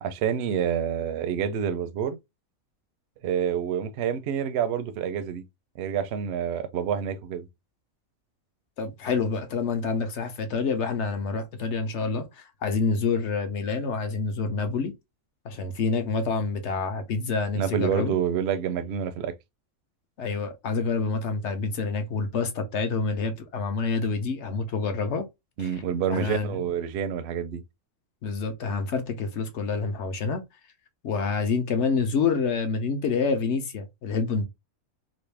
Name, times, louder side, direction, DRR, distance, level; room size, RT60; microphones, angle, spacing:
voice 1, 0.0-2.2 3.2-5.4 5.8-7.5 17.5-19.3 25.6-27.6, right 8 dB, 65° right, 0.7 m, -28 dB
voice 2, 8.8-12.3 12.6-14.9 15.4-18.2 20.2-25.3 25.6-25.7 26.1-26.7 28.2-30.4 31.0-34.5, left 4 dB, 60° left, 1.0 m, -27 dB
3.1 x 2.6 x 3.3 m
omnidirectional pair, 1.5 m